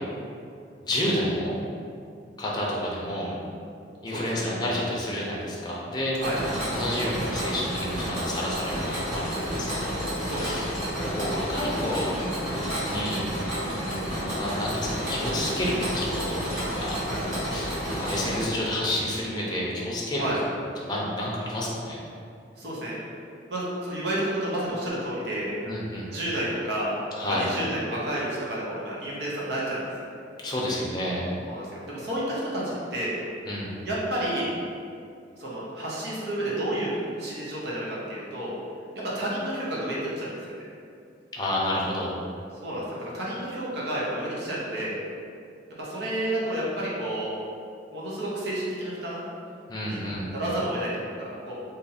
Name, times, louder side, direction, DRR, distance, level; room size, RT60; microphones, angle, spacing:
voice 1, 0.8-1.5 2.4-3.3 4.0-6.2 6.7-10.7 11.0-12.1 12.8-13.3 13.7-17.0 17.5-17.7 18.0-20.4 20.8-22.0 25.6-26.1 27.2-27.4 30.4-31.3 33.5-33.8 41.3-42.2 49.7-50.3, left 1 dB, 25° left, -5 dB, 0.6 m, -30 dB
voice 2, 4.1-4.5 6.2-6.4 10.2-10.6 17.0-17.2 20.1-20.4 22.6-23.0 23.5-25.5 26.1-26.9 27.3-29.9 31.5-33.2 33.8-34.5 35.4-36.9 37.2-38.5 39.1-40.4 42.6-45.0 45.8-47.3 47.9-49.2 49.9-50.0 50.3-51.5, right 1 dB, 60° right, -6 dB, 0.8 m, -30 dB
Mechanisms, 6.2-18.4, equal, 45° right, 1.2 m, -30 dB
2.7 x 2.6 x 4.0 m, 2.5 s
head